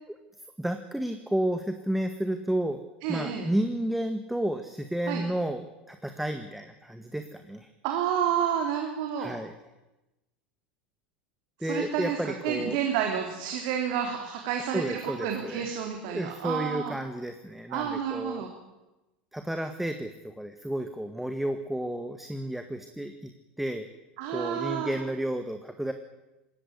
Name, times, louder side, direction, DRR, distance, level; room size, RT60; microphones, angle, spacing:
voice 1, 0.6-2.8 3.1-7.7 9.2-9.5 11.6-12.8 14.7-15.6 16.1-18.4 19.3-23.3 23.6-23.9 24.3-25.9, right 1 dB, 5° right, 7 dB, 1.8 m, -31 dB
voice 2, 3.0-3.5 5.1-5.2 7.8-9.4 11.6-17.0 17.7-18.5 24.2-24.9, right 8 dB, 60° right, 3 dB, 3.2 m, -30 dB
20.5 x 17.0 x 9.9 m, 1.0 s
hypercardioid pair, 80°, 5 cm